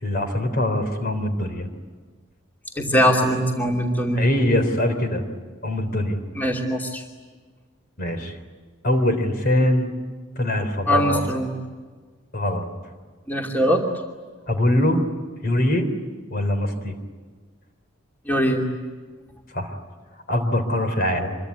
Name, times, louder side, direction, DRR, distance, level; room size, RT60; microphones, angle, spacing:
voice 1, 0.0-1.7 4.1-5.2 5.6-6.2 8.0-8.4 8.8-9.9 10.4-11.2 12.3-12.6 14.5-15.0 15.4-15.9 16.3-16.9 19.5-19.7 20.3-21.4, left 1 dB, 45° left, 7 dB, 3.6 m, -22 dB
voice 2, 2.8-4.2 6.3-7.0 10.9-11.6 13.3-13.8 18.3-18.6, equal, 10° left, 0 dB, 2.7 m, -21 dB
26.0 x 23.5 x 9.6 m, 1.4 s
head